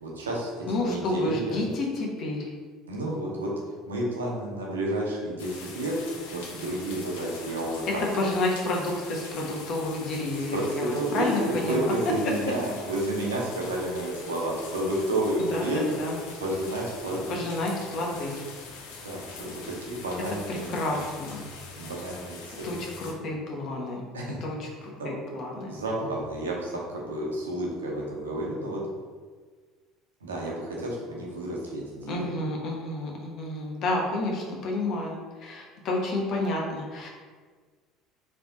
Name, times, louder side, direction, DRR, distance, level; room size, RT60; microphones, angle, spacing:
voice 1, 0.0-1.6 2.9-6.0 6.3-8.0 10.5-16.0 16.4-17.4 19.0-21.0 21.8-22.8 24.1-24.4 25.0-25.1 25.7-28.8 30.2-32.4, right 1 dB, 90° right, -3 dB, 0.9 m, -31 dB
voice 2, 0.7-2.5 8.1-11.9 15.4-16.2 17.3-18.4 20.5-21.5 22.6-24.0 24.4-25.8 32.1-37.1, left 2 dB, 55° left, 0 dB, 1.0 m, -30 dB
sound 1, 5.4-23.1, left 4 dB, 75° left, 0.7 m, -43 dB
3.5 x 3.3 x 3.9 m, 1.5 s
hypercardioid pair, 70°, 0 cm